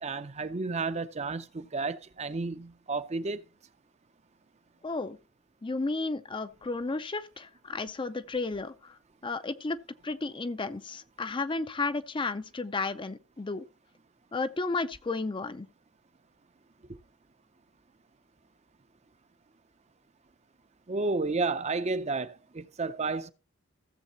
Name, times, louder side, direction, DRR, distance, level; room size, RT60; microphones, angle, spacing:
voice 1, 0.0-3.4 20.9-23.3, right 3 dB, 30° right, 0.5 m, -32 dB
voice 2, 4.8-5.2 5.6-9.0 9.2-9.8 10.0-13.6 14.3-15.7, left 3 dB, 20° left, 0.4 m, -33 dB
16.0 x 7.4 x 2.8 m
head